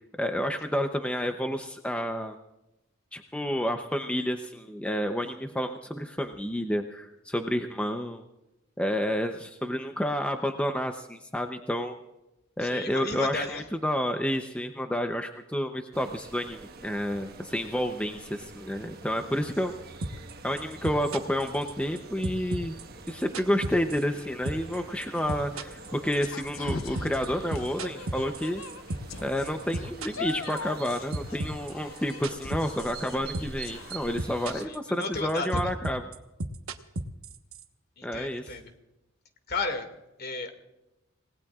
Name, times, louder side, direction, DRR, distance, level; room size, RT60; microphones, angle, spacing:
voice 1, 0.2-2.3 3.1-8.2 8.8-12.0 12.6-19.7 20.4-22.8 23.1-28.6 29.2-36.0 38.0-38.6, equal, 5° left, 5 dB, 0.7 m, -30 dB
voice 2, 12.6-13.6 34.5-35.7 38.0-38.7 39.5-39.9 40.2-40.5, left 3 dB, 50° left, 6 dB, 2.1 m, -34 dB
sound 1, 15.9-34.7, right 3 dB, 50° right, 1.5 m, -46 dB
sound 2, 20.0-20.3 20.6-22.0 22.2-24.2 24.5-24.8 25.0-29.2 29.5-30.9 31.1-33.1 33.3-33.6 33.9-34.8 35.0-37.6, right 2 dB, 85° right, 1.2 m, -34 dB
sound 3, 24.5-34.7, left 4 dB, 75° left, 0.9 m, -42 dB
27.5 x 18.5 x 2.4 m, 0.95 s
head